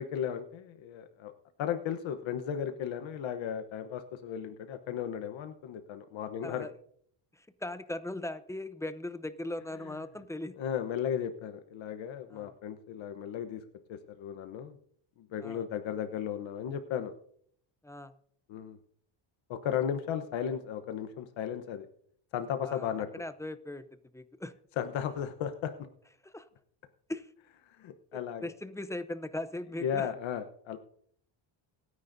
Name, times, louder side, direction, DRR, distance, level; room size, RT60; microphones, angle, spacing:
voice 1, 0.0-1.3 1.6-6.7 10.6-13.6 13.9-14.8 15.2-17.1 18.5-18.8 19.5-21.9 22.3-23.1 24.8-25.7 27.7-28.5 29.8-30.8, left 9 dB, 70° left, 8 dB, 1.1 m, -35 dB
voice 2, 7.3-10.6 12.3-12.5 15.4-15.6 17.8-18.1 22.6-24.5 26.2-26.5 27.1-27.3 28.4-30.1, left 1 dB, 5° left, 12 dB, 0.6 m, -39 dB
27.0 x 9.7 x 2.7 m, 0.63 s
cardioid pair, 125°, 48 cm